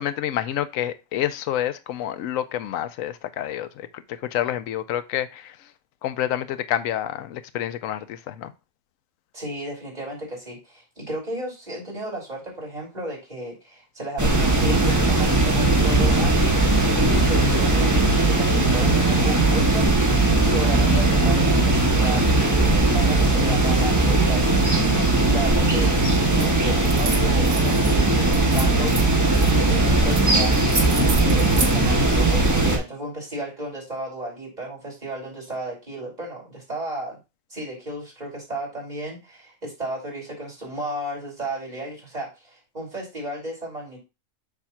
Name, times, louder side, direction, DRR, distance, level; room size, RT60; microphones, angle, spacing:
voice 1, 0.0-5.6 6.0-8.5, left 11 dB, 85° left, 1.0 m, -28 dB
voice 2, 9.3-24.9 25.2-28.9 29.7-30.6 31.2-37.2 37.5-44.0, right 1 dB, 30° right, 3.1 m, -34 dB
sound 1, 14.2-32.8, right 2 dB, 15° right, 1.2 m, -19 dB
sound 2, 26.3-26.5 26.8-27.9 28.3-29.5 30.1-30.2 30.5-31.7, right 3 dB, 70° right, 1.6 m, -30 dB
7.0 x 2.7 x 5.7 m
omnidirectional pair, 1.3 m